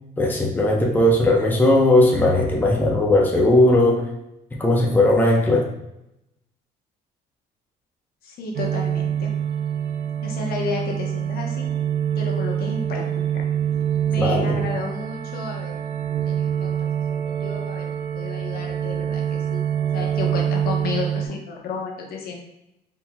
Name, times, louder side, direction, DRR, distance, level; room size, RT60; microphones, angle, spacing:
voice 1, 0.2-4.0 4.6-5.6 14.2-14.5, left 1 dB, 10° left, -2 dB, 0.8 m, -17 dB
voice 2, 8.2-9.3 10.2-11.7 12.2-13.1 13.3-13.4 14.0-15.8 16.2-19.7 19.9-22.3, left 4 dB, 65° left, -1 dB, 1.0 m, -32 dB
sound 1, 8.6-21.3, right 9 dB, 60° right, 0.5 m, -25 dB
4.4 x 3.6 x 2.2 m, 0.85 s
cardioid pair, 110°, 17 cm